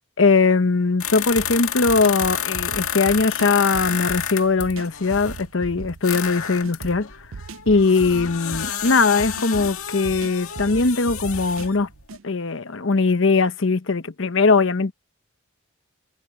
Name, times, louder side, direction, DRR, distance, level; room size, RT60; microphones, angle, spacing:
voice 1, 0.2-7.1 7.7-11.9 12.2-14.9, left 4 dB, 60° left, 0.9 m, -20 dB
sound 1, 1.0-5.4 6.0-11.8 12.1-12.2, left 9 dB, 80° left, 2.0 m, -30 dB
sound 2, 1.4-12.2, right 4 dB, 65° right, 0.5 m, -38 dB
head